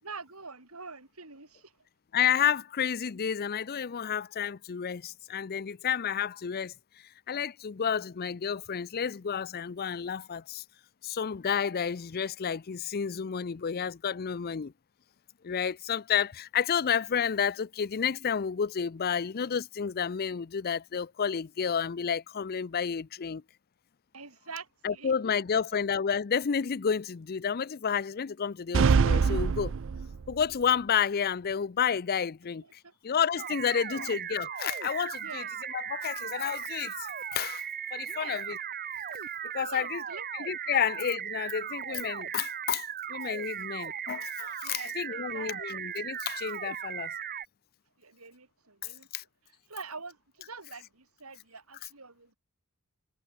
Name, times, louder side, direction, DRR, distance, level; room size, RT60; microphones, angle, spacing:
voice 1, 0.0-1.7 24.1-25.4 32.8-32.9 33.9-34.1 35.2-35.5 38.1-38.4 39.6-40.3 40.7-40.8 44.6-45.9 48.0-49.1 49.7-52.4, right 4 dB, 80° right, 7.8 m, -45 dB
voice 2, 2.1-6.7 7.3-10.6 11.0-14.7 15.4-23.4 24.8-29.7 30.3-37.7 37.9-38.6 39.5-40.0 40.3-47.1 49.1-49.2, left 7 dB, 45° left, 0.5 m, -30 dB
sound 1, 28.7-30.4, right 5 dB, 60° right, 0.5 m, -24 dB
sound 2, 33.4-47.5, right 8 dB, 45° right, 1.3 m, -37 dB
head